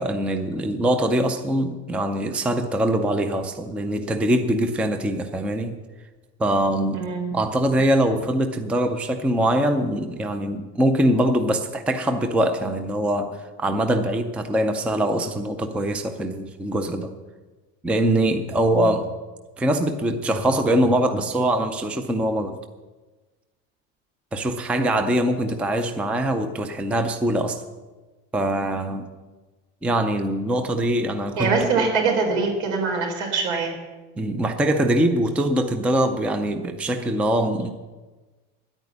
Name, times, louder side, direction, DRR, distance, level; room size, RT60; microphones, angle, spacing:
voice 1, 0.0-5.8 6.4-7.0 7.3-17.1 17.8-19.1 19.6-22.6 24.3-27.6 28.3-29.1 29.8-31.6 34.2-37.7, right 1 dB, 5° right, 8 dB, 0.4 m, -23 dB
voice 2, 6.9-7.3 18.7-18.9 31.4-33.8, right 4 dB, 80° right, 2 dB, 4.2 m, -23 dB
10.5 x 9.1 x 9.6 m, 1.3 s
cardioid pair, 180°, 32 cm